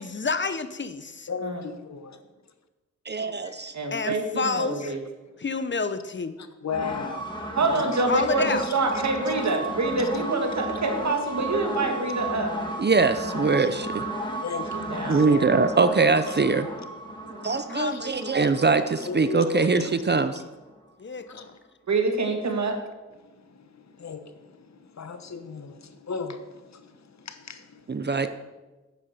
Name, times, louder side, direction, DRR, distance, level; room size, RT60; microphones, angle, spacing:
voice 1, 0.0-1.3 3.9-4.9 5.4-6.4 8.1-8.6 17.7-18.4 21.0-21.5, left 4 dB, 40° left, 12 dB, 0.7 m, -29 dB
voice 2, 1.3-2.2 3.4-3.8 4.8-4.9 5.2-5.3 6.6-8.0 8.6-9.4 10.0-10.1 14.4-15.2 16.3-16.4 17.3-17.5 17.7-18.0 18.4-18.5 19.0-19.9 21.3-21.6 23.2-28.3, left 5 dB, 65° left, 9 dB, 1.1 m, -37 dB
voice 3, 3.1-3.7 12.8-14.0 15.1-16.7 17.4-20.4 27.9-28.3, right 4 dB, 35° right, 11 dB, 0.6 m, -22 dB
voice 4, 3.7-5.0 7.6-12.5 14.7-15.5 21.9-22.8, right 3 dB, 65° right, 4 dB, 2.0 m, -26 dB
sound 1, 6.7-20.3, right 1 dB, 15° left, 2.2 m, -34 dB
10.0 x 8.8 x 6.6 m, 1.2 s
wide cardioid pair, 125°, 30 cm